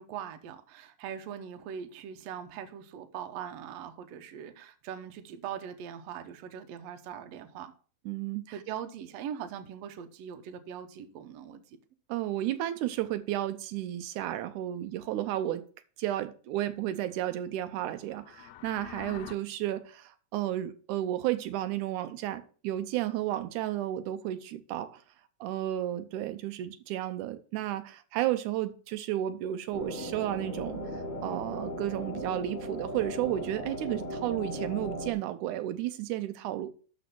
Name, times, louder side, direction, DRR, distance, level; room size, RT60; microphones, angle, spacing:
voice 1, 0.0-7.7 8.5-11.8, right 8 dB, 65° right, 1.9 m, -41 dB
voice 2, 8.1-8.4 12.1-15.6 16.0-25.0 25.4-36.7, right 13 dB, 85° right, 2.2 m, -32 dB
sound 1, 18.0-19.3, left 11 dB, 75° left, 1.8 m, -46 dB
sound 2, 29.7-35.1, equal, 25° left, 1.0 m, -37 dB
12.0 x 4.3 x 5.9 m
omnidirectional pair, 3.5 m